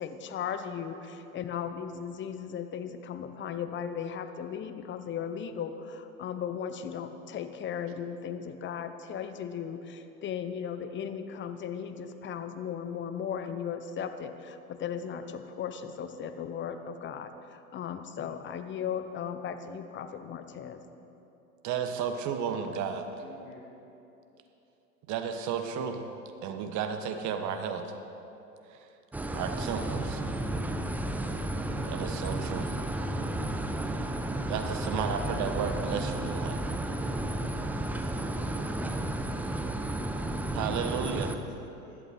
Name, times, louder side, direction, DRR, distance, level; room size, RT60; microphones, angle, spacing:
voice 1, 0.0-20.8, left 8 dB, 25° left, 9 dB, 0.9 m, -37 dB
voice 2, 21.6-23.1 25.1-26.0 26.4-27.9 28.7-28.9 29.3-30.2 31.9-32.8 34.5-36.6 40.5-41.3, right 7 dB, 40° right, 7 dB, 1.3 m, -33 dB
voice 3, 23.2-23.6 37.8-38.7 41.2-42.0, left 3 dB, 55° left, -2 dB, 3.5 m, -52 dB
sound 1, 29.1-41.4, right 1 dB, 5° right, 0.5 m, -32 dB
15.5 x 11.5 x 4.3 m, 2.9 s
hypercardioid pair, 95°, 44 cm